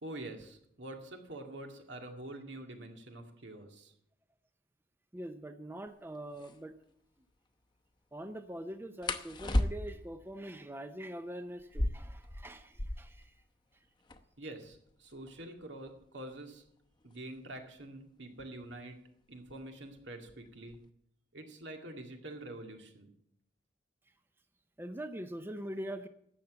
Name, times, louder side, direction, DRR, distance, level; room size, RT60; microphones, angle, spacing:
voice 1, 0.0-3.9 14.4-16.6 17.0-19.0 19.3-20.8 21.3-23.1, right 1 dB, 80° right, 4 dB, 2.1 m, -46 dB
voice 2, 5.1-6.7 8.1-13.3 24.8-26.1, right 1 dB, 10° right, 9 dB, 0.6 m, -43 dB
sound 1, 5.9-6.0 6.3-6.6 9.0-10.1 11.6-13.2 13.5-13.6 13.8-14.4 15.1-17.6 18.6-18.9 19.3-19.8 20.1-20.9, left 1 dB, 25° left, 0.9 m, -35 dB
12.5 x 8.3 x 8.1 m, 0.74 s
head